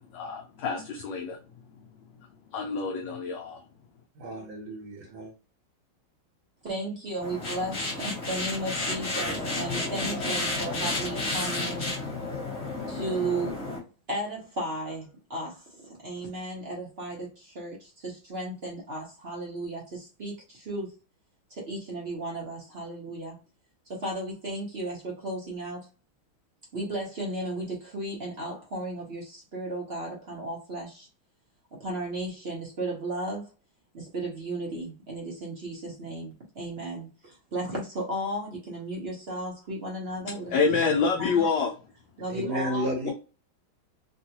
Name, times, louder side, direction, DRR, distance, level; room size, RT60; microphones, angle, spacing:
voice 1, 0.2-1.3 2.5-3.5 40.5-41.7 43.1-43.2, left 5 dB, 75° left, 1.1 m, -26 dB
voice 2, 4.2-5.3 42.3-43.1, equal, 80° right, 1.6 m, -32 dB
voice 3, 6.6-11.9 12.9-13.7 14.1-20.9 21.5-23.4 23.9-25.9 26.7-31.1 31.7-33.5 33.9-40.9 41.2-41.5 42.2-42.9, right 1 dB, 55° right, 0.7 m, -35 dB
sound 1, 7.2-13.8, left 2 dB, 40° left, 1.4 m, -31 dB
3.5 x 2.3 x 2.8 m
omnidirectional pair, 2.3 m